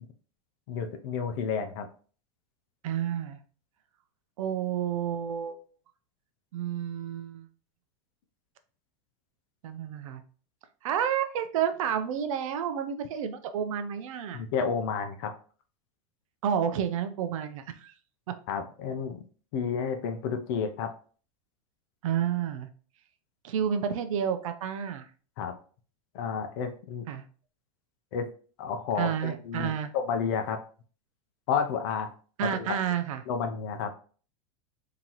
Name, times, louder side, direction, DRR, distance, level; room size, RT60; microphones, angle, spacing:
voice 1, 0.7-1.9 14.3-15.3 18.5-19.2 19.5-20.9 25.4-25.5 26.1-27.1 28.1-28.3 28.6-30.6 31.5-32.1 32.4-32.8 33.3-33.9, left 6 dB, 45° left, 7 dB, 0.6 m, -31 dB
voice 2, 2.8-3.4 4.4-5.6 6.5-7.5 9.6-10.2 10.8-14.4 16.4-17.9 22.0-22.7 23.4-25.0 27.1-27.2 29.0-29.9 32.4-33.2, right 8 dB, 75° right, 9 dB, 0.6 m, -30 dB
3.9 x 2.9 x 2.9 m, 0.41 s
supercardioid pair, 180°, 17 cm